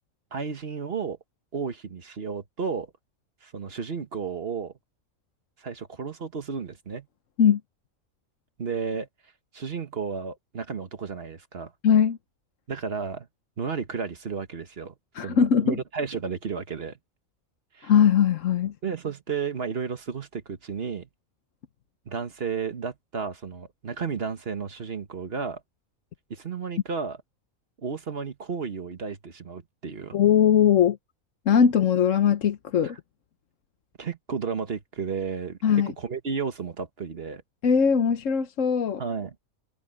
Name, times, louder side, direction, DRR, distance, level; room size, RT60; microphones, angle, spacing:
voice 1, 0.3-1.2 1.5-2.9 3.4-4.7 5.6-7.1 8.6-9.1 9.5-11.7 12.7-13.3 13.6-14.9 15.2-17.0 17.7-17.9 18.8-21.1 22.1-25.6 26.3-27.2 27.8-30.2 32.8-32.9 34.0-37.4 39.0-39.4, right 5 dB, 45° right, 1.4 m, -33 dB
voice 2, 11.8-12.2 15.1-15.8 17.8-18.7 30.1-31.0 31.5-33.0 35.6-35.9 37.6-39.0, left 8 dB, 70° left, 1.3 m, -20 dB
omnidirectional pair, 1.4 m